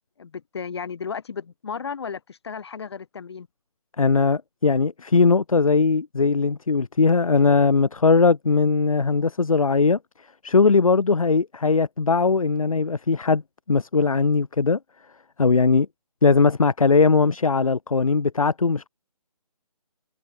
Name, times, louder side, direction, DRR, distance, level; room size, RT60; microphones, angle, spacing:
voice 1, 0.2-3.5, left 6 dB, 45° left, 7.9 m, -34 dB
voice 2, 4.0-10.0 10.4-13.4 13.7-14.8 15.4-15.9 16.2-18.9, left 4 dB, 65° left, 1.1 m, -19 dB
figure-of-eight pair, 150°, 19 cm